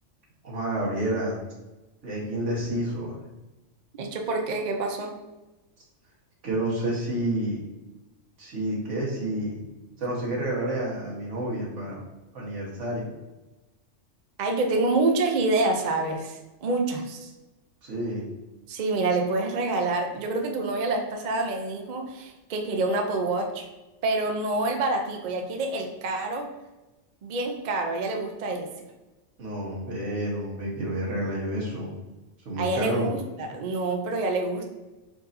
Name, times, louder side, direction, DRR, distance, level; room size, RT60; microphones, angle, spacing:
voice 1, 0.4-1.4 2.0-3.3 6.4-7.6 8.4-9.6 10.0-12.0 12.3-13.1 17.8-18.3 29.4-31.9 32.4-33.1, right 1 dB, 75° right, -4 dB, 1.6 m, -29 dB
voice 2, 3.9-5.2 14.4-17.3 18.7-23.7 24.0-26.5 27.2-28.7 32.6-34.7, right 2 dB, 50° right, 3 dB, 0.5 m, -27 dB
4.7 x 4.0 x 2.6 m, 1.1 s
omnidirectional pair, 1.3 m